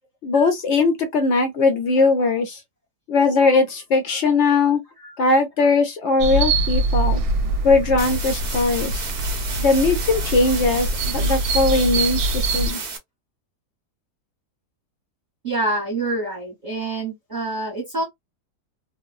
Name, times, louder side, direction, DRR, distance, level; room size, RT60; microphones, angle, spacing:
voice 1, 0.2-2.6 3.1-4.8 5.2-7.2 7.6-9.0 9.6-12.8, left 3 dB, 70° left, 0.7 m, -19 dB
sound 1, 6.2-12.7, right 2 dB, 75° right, 1.0 m, -24 dB
sound 2, 8.0-13.0, right 5 dB, 90° right, 0.4 m, -32 dB
voice 2, 15.4-18.0, right 2 dB, 30° right, 1.0 m, -26 dB
2.8 x 2.1 x 2.4 m
omnidirectional pair, 1.7 m